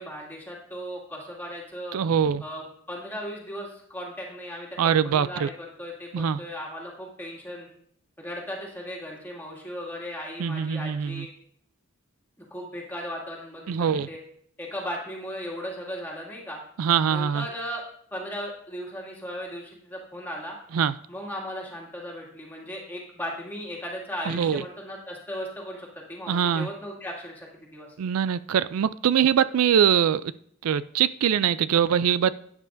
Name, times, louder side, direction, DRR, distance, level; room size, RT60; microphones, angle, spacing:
voice 1, 0.0-2.0 2.4-7.7 8.2-11.3 12.5-14.2 14.6-16.6 17.1-17.8 18.1-20.6 21.1-27.9, equal, 10° left, -3 dB, 2.2 m, -37 dB
voice 2, 1.9-2.4 4.8-5.5 6.1-6.4 10.4-11.3 13.7-14.1 16.8-17.5 20.7-20.9 24.3-24.6 26.3-26.7 28.0-30.3 30.6-32.3, right 8 dB, 90° right, 16 dB, 0.4 m, -23 dB
11.5 x 9.7 x 2.6 m, 0.64 s
head